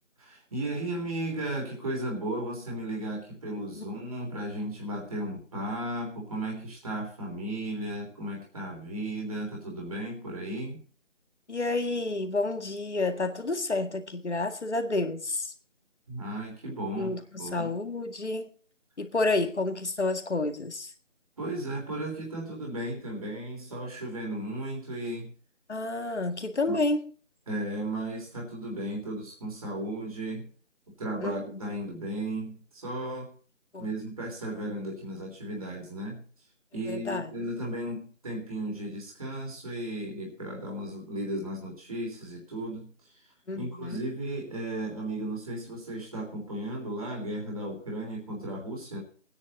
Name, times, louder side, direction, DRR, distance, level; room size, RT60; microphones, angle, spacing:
voice 1, 0.2-10.8 16.1-17.7 21.4-25.3 26.7-26.8 27.5-30.5 31.0-33.3 33.8-36.2 36.7-43.3 43.5-49.0, right 1 dB, 30° right, 3.4 m, -35 dB
voice 2, 11.5-15.5 16.9-18.5 19.0-20.9 25.7-27.1 31.2-31.3 33.7-33.9 36.9-37.3 43.5-44.0, left 2 dB, 65° left, 1.9 m, -30 dB
18.0 x 9.8 x 4.2 m
figure-of-eight pair, 175°, 37 cm